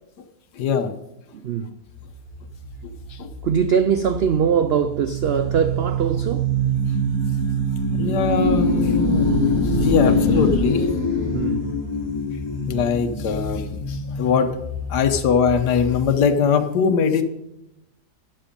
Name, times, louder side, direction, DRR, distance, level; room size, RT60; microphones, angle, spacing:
voice 1, 0.6-1.0 2.8-3.3 7.9-9.4 9.8-10.9 12.7-14.6 14.9-17.2, left 6 dB, 90° left, 1.5 m, -21 dB
voice 2, 1.3-1.8 3.4-6.5 11.3-11.7, right 7 dB, 90° right, 0.5 m, -22 dB
sound 1, 1.9-16.1, equal, 15° left, 2.8 m, -24 dB
14.0 x 10.0 x 5.2 m
omnidirectional pair, 1.7 m